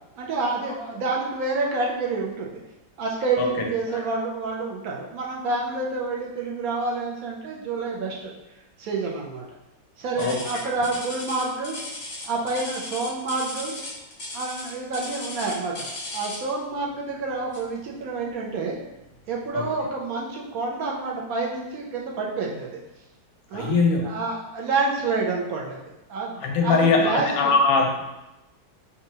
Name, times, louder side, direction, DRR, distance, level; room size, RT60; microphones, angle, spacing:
voice 1, 0.1-2.6 3.0-8.3 8.8-9.4 10.0-11.7 12.2-13.7 14.3-18.7 19.3-22.8 23.5-23.8 24.0-25.8 26.1-27.5, right 3 dB, 70° right, -2 dB, 0.9 m, -28 dB
voice 2, 3.4-4.0 10.2-10.4 19.5-19.7 23.5-24.0 26.4-28.1, left 4 dB, 85° left, 2 dB, 1.4 m, -22 dB
sound 1, 10.2-16.6 17.5-17.8 18.3-18.4 19.1-19.2, left 2 dB, 45° left, 0.7 m, -36 dB
5.3 x 2.5 x 2.7 m, 0.96 s
omnidirectional pair, 2.1 m